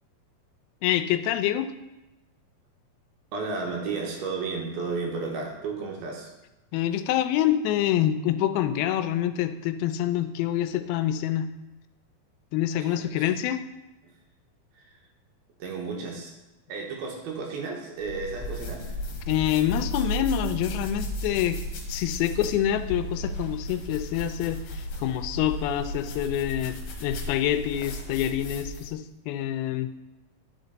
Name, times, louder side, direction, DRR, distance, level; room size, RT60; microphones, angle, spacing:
voice 1, 0.8-1.7 6.7-11.5 12.5-13.6 19.3-21.6 21.9-29.9, left 11 dB, 90° left, 10 dB, 2.5 m, -26 dB
voice 2, 3.3-6.3 12.8-13.3 14.7-14.9 15.6-16.3 16.7-19.0, right 4 dB, 85° right, 0 dB, 3.1 m, -33 dB
sound 1, 18.0-29.0, equal, 65° left, 2.0 m, -34 dB
9.4 x 5.2 x 4.0 m, 1.0 s
omnidirectional pair, 4.3 m